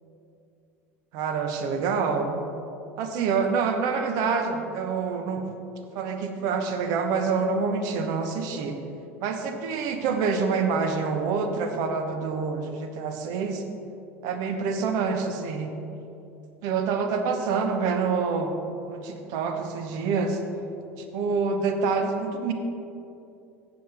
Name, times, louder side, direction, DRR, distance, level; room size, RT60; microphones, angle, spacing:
voice 1, 1.1-2.4 3.0-5.5 5.9-8.8 9.2-13.6 14.2-15.7 16.6-18.5 18.8-20.4 21.0-22.5, right 5 dB, 55° right, 6 dB, 1.1 m, -27 dB
15.5 x 7.1 x 3.5 m, 2.7 s
figure-of-eight pair, 75°, 8 cm